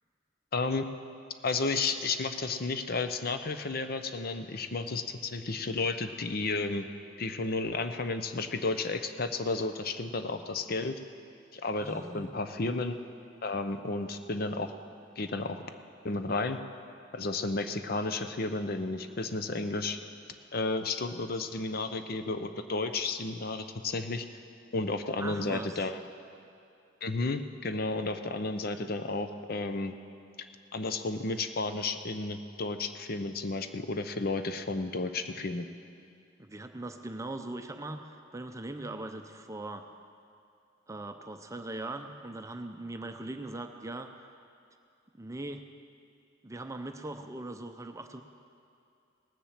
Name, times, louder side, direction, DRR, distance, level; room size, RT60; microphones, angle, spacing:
voice 1, 0.5-0.9 1.4-6.9 7.2-10.9 11.5-13.0 13.4-14.7 15.2-15.6 16.0-16.6 17.1-20.0 20.5-24.2 24.7-26.0 27.0-29.9 30.7-35.7, left 3 dB, 50° left, 8 dB, 0.7 m, -32 dB
voice 2, 11.8-12.3 25.2-25.8 36.4-39.9 40.9-44.1 45.1-45.6 46.4-48.2, right 2 dB, 15° right, 6 dB, 0.6 m, -40 dB
18.5 x 7.2 x 7.4 m, 2.5 s
head